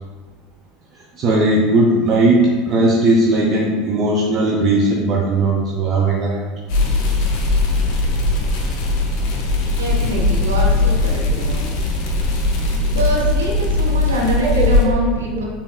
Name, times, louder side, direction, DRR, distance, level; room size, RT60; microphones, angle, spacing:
voice 1, 1.2-6.4 14.4-14.7, right 2 dB, 35° right, -3 dB, 0.6 m, -17 dB
sound 1, 6.7-14.8, left 2 dB, 50° left, 0.8 m, -19 dB
voice 2, 9.8-11.8 12.7-15.4, right 1 dB, 75° right, -2 dB, 0.8 m, -24 dB
6.7 x 3.5 x 2.2 m, 1.3 s
figure-of-eight pair, 75°, 0 cm